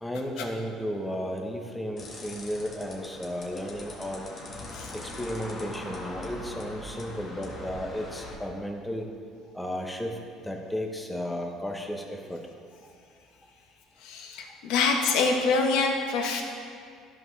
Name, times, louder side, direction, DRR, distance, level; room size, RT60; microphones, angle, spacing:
voice 1, 0.0-4.3 4.9-9.1 9.5-10.2 10.4-12.4, equal, 5° left, 2 dB, 0.9 m, -34 dB
sound 1, 2.0-8.4, left 1 dB, 35° left, 1.6 m, -41 dB
voice 2, 14.0-16.4, left 4 dB, 80° left, 2 dB, 1.1 m, -25 dB
13.5 x 5.4 x 3.2 m, 2.2 s
cardioid pair, 135°, 0 cm